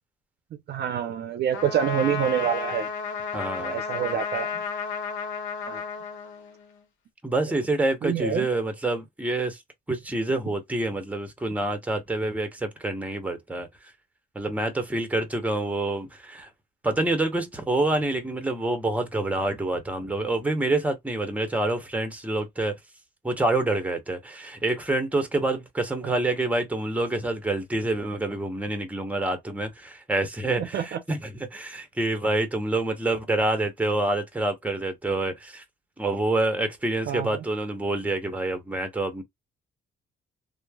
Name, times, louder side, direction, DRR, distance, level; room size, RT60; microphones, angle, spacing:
voice 1, 0.7-2.9 3.6-4.5 5.7-5.8 8.0-8.5 26.0-26.1 30.6-31.0 37.1-37.4, right 9 dB, 55° right, 0.5 m, -27 dB
Trumpet, 1.5-6.8, left 5 dB, 80° left, 0.8 m, -32 dB
voice 2, 3.3-3.8 7.2-9.6 9.9-13.7 14.3-16.5 16.8-22.7 23.2-35.6 36.0-39.2, right 2 dB, 5° right, 0.7 m, -27 dB
3.0 x 2.0 x 2.2 m
cardioid pair, 90°, 20 cm